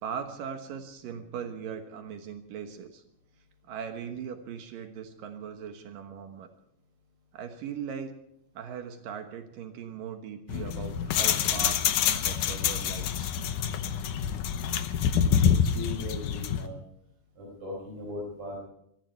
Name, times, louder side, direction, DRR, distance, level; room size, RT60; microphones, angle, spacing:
voice 1, 0.0-3.0 3.6-6.5 7.3-8.2 8.5-13.3, right 7 dB, 75° right, 6 dB, 2.9 m, -39 dB
sound 1, 10.5-16.7, left 8 dB, 75° left, 2.4 m, -27 dB
voice 2, 15.4-16.8 17.4-18.6, left 2 dB, 55° right, -3 dB, 5.7 m, -38 dB
22.5 x 14.0 x 4.6 m, 0.74 s
omnidirectional pair, 3.9 m